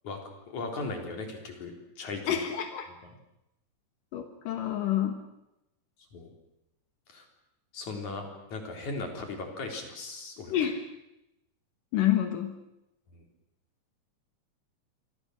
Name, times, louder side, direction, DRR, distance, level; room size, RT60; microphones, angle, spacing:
voice 1, 0.5-1.7 2.0-2.4 6.1-6.3 7.1-7.2 7.7-8.2 8.5-10.6, left 3 dB, 60° left, 3 dB, 5.0 m, -37 dB
voice 2, 2.3-2.9 4.1-5.2 10.5-10.8 11.9-12.6, left 11 dB, 75° left, 6 dB, 3.0 m, -28 dB
28.5 x 24.0 x 6.4 m, 0.88 s
omnidirectional pair, 3.9 m